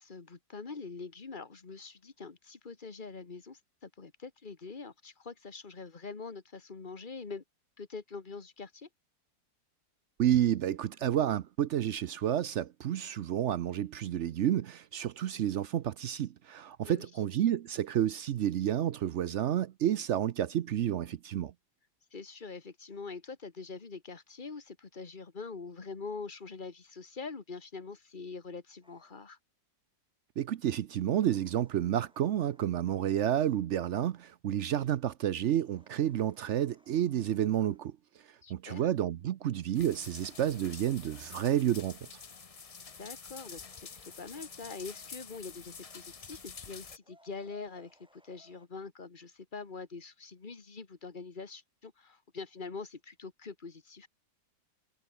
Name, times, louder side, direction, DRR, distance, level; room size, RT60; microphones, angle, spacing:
voice 1, 0.0-7.4 7.8-8.9 16.8-17.1 22.1-29.4 38.4-38.9 43.0-54.1, left 4 dB, 25° left, 1.6 m, -44 dB
voice 2, 10.2-21.5 30.4-37.9 38.5-42.0, right 11 dB, 85° right, 0.6 m, -30 dB
sound 1, 28.8-29.2 31.0-33.3 35.5-37.9 39.7-41.8 43.5-45.0 47.0-48.7, equal, ahead, 7.7 m, -66 dB
sound 2, 39.7-47.0, left 5 dB, 65° left, 0.3 m, -48 dB
omnidirectional pair, 2.0 m